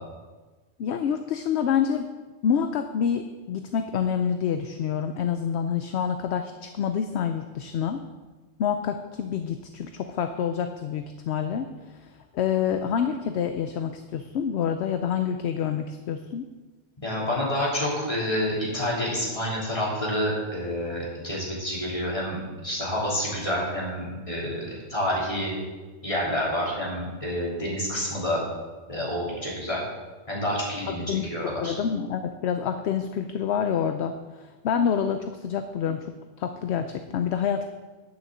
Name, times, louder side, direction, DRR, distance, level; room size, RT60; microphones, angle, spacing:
voice 1, 0.8-2.1 2.4-8.0 8.6-16.4 30.9-31.3 31.6-36.1 36.4-37.7, left 8 dB, 65° left, 8 dB, 0.8 m, -27 dB
voice 2, 17.0-25.5 26.0-28.4 28.9-29.8 30.3-31.7, equal, 25° left, -6 dB, 3.4 m, -28 dB
10.0 x 6.5 x 7.4 m, 1.3 s
omnidirectional pair, 1.3 m